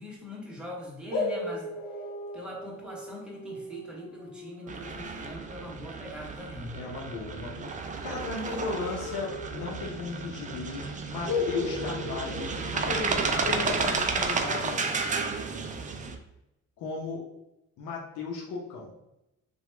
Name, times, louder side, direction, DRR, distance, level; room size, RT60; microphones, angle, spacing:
voice 1, 0.0-1.7 2.3-6.8 13.4-13.6, left 1 dB, 5° right, -3 dB, 1.0 m, -42 dB
sound 1, 1.1-6.5 8.8-10.2 10.5-10.6 11.2-13.4, left 3 dB, 45° left, 1.2 m, -36 dB
sound 2, 4.7-16.2, right 4 dB, 25° right, 0.4 m, -32 dB
voice 2, 6.7-7.7 8.0-14.8 16.8-17.2 17.8-18.9, left 4 dB, 85° left, -2 dB, 0.7 m, -36 dB
2.9 x 2.3 x 3.1 m, 0.88 s
cardioid pair, 90°, 30 cm